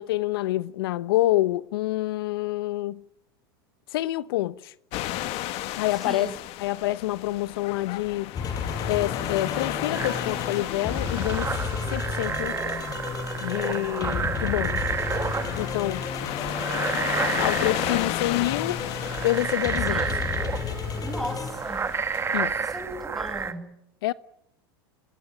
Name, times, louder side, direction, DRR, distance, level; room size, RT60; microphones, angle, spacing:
voice 1, 0.0-3.0 3.9-4.7 5.8-6.3 6.6-8.5 8.8-12.6 13.4-14.9 15.6-16.1 17.4-18.8 19.2-20.0 22.3-22.6 24.0-24.1, left 16 dB, 70° left, 1.1 m, -27 dB
sound 1, 4.9-22.5, left 15 dB, 55° left, 1.9 m, -34 dB
voice 2, 5.9-6.4 19.9-20.2 21.0-21.9 22.6-23.8, equal, ahead, 6.6 m, -37 dB
sound 2, 8.3-21.5, left 5 dB, 30° left, 6.3 m, -32 dB
sound 3, 9.9-23.5, right 5 dB, 20° right, 2.0 m, -31 dB
28.0 x 19.0 x 9.0 m
hypercardioid pair, 105°, 13 cm